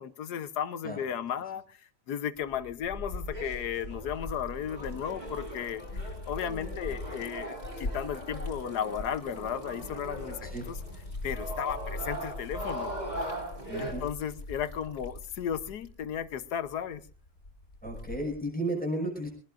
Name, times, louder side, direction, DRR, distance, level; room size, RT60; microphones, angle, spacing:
voice 1, 0.0-1.8 2.1-10.7 11.2-13.3 13.8-17.0, left 8 dB, 65° left, 13 dB, 1.4 m, -35 dB
Liquid, 2.4-18.5, left 2 dB, 35° left, 4.1 m, -42 dB
sound 1, 3.0-13.9, right 1 dB, 20° right, 5.5 m, -40 dB
voice 2, 6.4-6.8 10.4-10.7 13.7-14.0 17.8-19.3, right 1 dB, 5° left, 1 dB, 5.6 m, -34 dB
24.0 x 19.0 x 2.6 m, 0.37 s
omnidirectional pair, 2.0 m